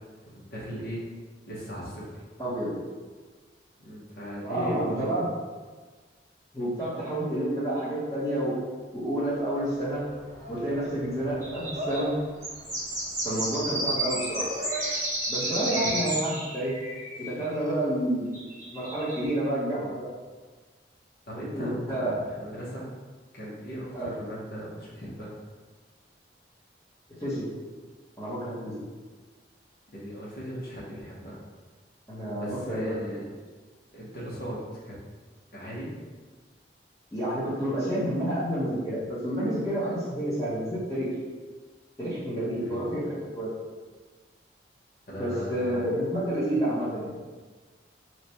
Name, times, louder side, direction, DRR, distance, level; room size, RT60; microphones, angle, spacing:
voice 1, 0.3-1.0 1.5-2.1 3.8-5.3 15.6-15.9 21.3-22.9 23.3-25.3 29.9-31.4 32.4-33.3 33.9-34.6 34.9-35.0 35.5-35.9 42.6-42.9 45.1-45.9, equal, 55° left, -6 dB, 0.9 m, -38 dB
voice 2, 2.4-2.7 4.4-5.3 6.5-8.5 8.9-10.0 10.5-12.1 13.2-14.5 15.3-16.7 17.2-18.4 18.7-20.1 21.5-22.2 23.9-24.1 27.2-27.5 28.2-28.8 32.1-33.0 37.1-41.1 42.0-43.5 45.2-47.2, right 1 dB, 15° left, -13 dB, 0.8 m, -29 dB
sound 1, 9.1-15.5, right 1 dB, 40° right, 0.8 m, -42 dB
sound 2, 11.4-12.1 12.4-17.3 18.3-19.3, right 1 dB, 15° right, 0.9 m, -32 dB
3.1 x 2.2 x 4.0 m, 1.4 s
head